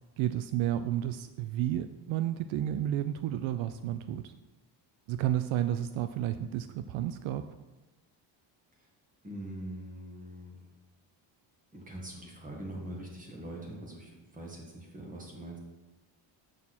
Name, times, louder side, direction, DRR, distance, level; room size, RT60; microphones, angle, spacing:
voice 1, 0.2-4.3 5.1-7.5, right 12 dB, 75° right, 11 dB, 0.5 m, -31 dB
voice 2, 9.2-10.6 11.7-15.6, right 1 dB, 15° right, -1 dB, 1.8 m, -43 dB
7.1 x 6.5 x 4.3 m, 1.1 s
cardioid pair, 145°, 48 cm